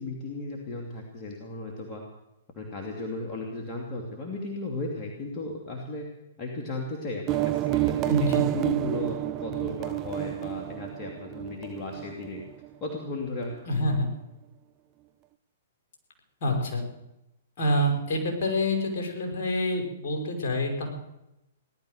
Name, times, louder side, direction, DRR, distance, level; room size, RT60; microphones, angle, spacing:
voice 1, 0.0-2.0 2.5-6.0 6.4-12.4 12.8-13.6, left 2 dB, 30° left, -1 dB, 3.0 m, -35 dB
sound 1, 7.3-12.7, right 15 dB, 30° right, 0.6 m, -29 dB
voice 2, 8.0-8.4 13.7-14.1 16.4-16.8 17.6-20.9, left 1 dB, 55° left, 3 dB, 5.4 m, -27 dB
18.0 x 12.0 x 6.6 m, 0.88 s
hypercardioid pair, 120°, 0 cm